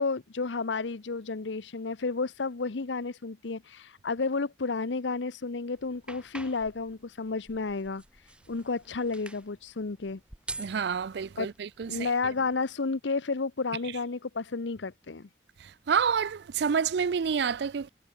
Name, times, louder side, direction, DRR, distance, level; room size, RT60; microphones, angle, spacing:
voice 1, 0.0-8.0 8.5-10.2 11.4-11.5 11.9-15.3, left 4 dB, 85° left, 0.8 m, -31 dB
sound 1, 5.7-12.5, right 2 dB, 5° right, 1.5 m, -47 dB
voice 2, 10.6-12.1 15.6-17.9, right 6 dB, 70° right, 0.4 m, -28 dB
head